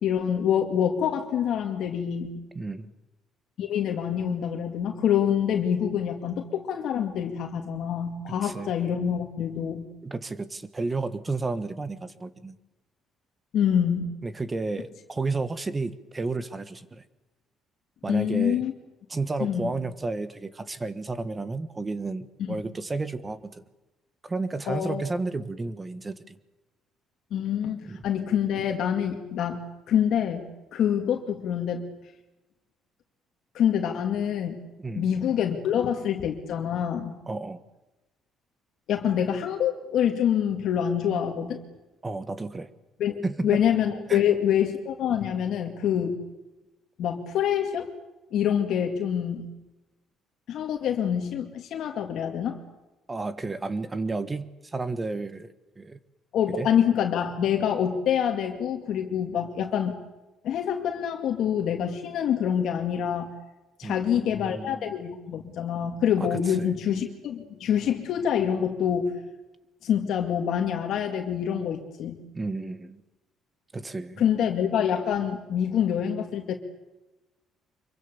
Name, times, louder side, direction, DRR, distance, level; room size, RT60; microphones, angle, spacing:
voice 1, 0.0-2.5 3.6-9.9 13.5-14.1 18.1-18.7 19.4-19.7 22.4-22.6 24.7-25.0 27.3-31.8 33.5-34.6 35.0-37.2 38.9-41.6 43.0-46.2 47.0-47.9 48.3-49.5 50.5-52.6 56.3-59.9 60.4-63.3 63.8-69.2 69.8-72.2 74.2-76.5, left 9 dB, 65° left, 3 dB, 2.2 m, -26 dB
voice 2, 2.5-2.9 8.3-8.7 10.0-12.5 14.2-17.0 18.0-18.6 19.1-23.6 24.2-26.4 27.9-28.0 34.8-35.1 37.3-37.6 42.0-42.7 43.2-43.6 44.1-44.3 53.1-56.0 56.6-56.7 63.8-64.9 66.2-66.7 72.3-73.0 73.7-74.3, right 3 dB, 20° right, 13 dB, 1.3 m, -32 dB
25.5 x 23.5 x 6.9 m, 1.0 s
cardioid pair, 135°, 0 cm